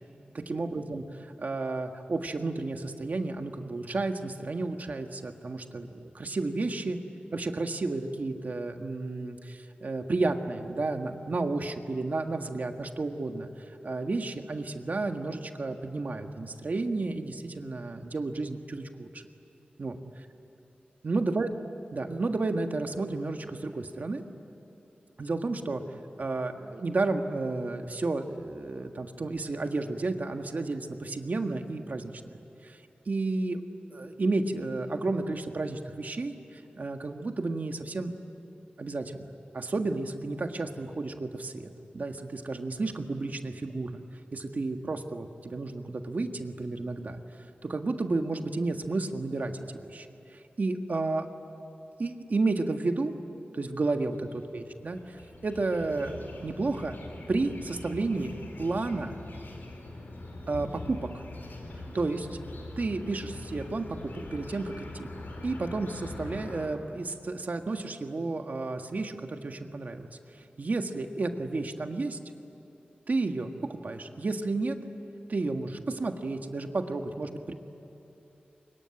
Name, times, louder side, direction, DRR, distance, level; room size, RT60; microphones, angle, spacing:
voice 1, 0.3-1.0 1.4-7.0 7.3-13.5 13.8-19.2 19.8-20.2 21.0-21.5 21.9-24.2 25.2-25.8 26.2-32.1 32.6-32.8 33.0-33.6 33.9-38.1 38.8-39.3 39.5-44.0 44.3-47.2 47.6-49.5 49.9-50.1 50.6-51.3 52.0-53.1 53.5-55.0 55.4-56.9 57.3-59.2 60.5-61.2 61.9-62.3 62.8-63.9 64.3-65.1 65.4-70.1 70.6-72.2 73.1-74.8 75.3-77.5, right 3 dB, 55° right, 5 dB, 1.6 m, -32 dB
sound 1, 54.1-66.7, left 2 dB, 85° left, 4.7 m, -43 dB
24.5 x 22.5 x 10.0 m, 2.9 s
wide cardioid pair, 100°, 3 cm